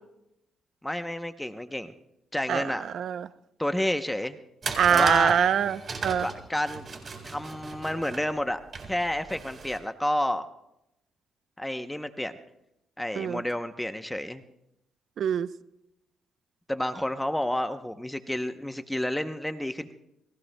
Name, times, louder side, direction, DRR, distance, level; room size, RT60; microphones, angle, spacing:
voice 1, 0.8-1.9 2.3-2.8 3.6-4.4 4.9-5.4 6.2-6.8 7.2-8.6 8.9-10.4 11.6-12.3 13.0-14.4 16.7-19.9, left 1 dB, 5° left, 8 dB, 0.7 m, -30 dB
voice 2, 2.9-3.3 4.8-6.3 13.2-13.4 15.2-15.5, right 8 dB, 65° right, 15 dB, 0.6 m, -24 dB
sound 1, 4.6-9.8, right 4 dB, 40° right, 4.1 m, -37 dB
30.0 x 21.5 x 2.2 m, 0.84 s
cardioid pair, 90°, 0 cm